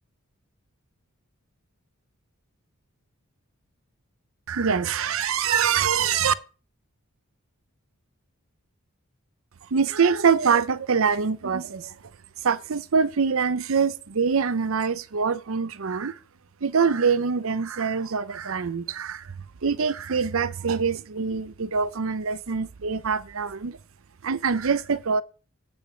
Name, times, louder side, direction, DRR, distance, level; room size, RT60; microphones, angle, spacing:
voice 1, 4.5-6.3 9.7-11.9 12.4-16.2 16.6-19.3 19.6-23.8 24.2-25.2, right 6 dB, 65° right, 0.6 m, -24 dB
8.7 x 5.1 x 7.3 m
head